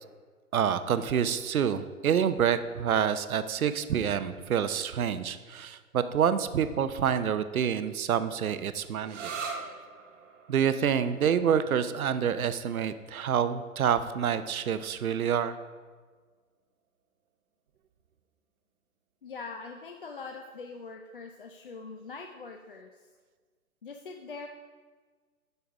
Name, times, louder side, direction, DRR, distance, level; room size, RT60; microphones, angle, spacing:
voice 1, 0.5-9.5 10.5-15.5, right 8 dB, 70° right, 12 dB, 0.7 m, -27 dB
sound 1, 9.0-16.4, right 5 dB, 55° right, 1.2 m, -45 dB
voice 2, 19.2-23.0 23.8-24.5, left 4 dB, 40° left, 3 dB, 0.4 m, -42 dB
9.4 x 5.7 x 3.5 m, 1.5 s
figure-of-eight pair, 140°, 44 cm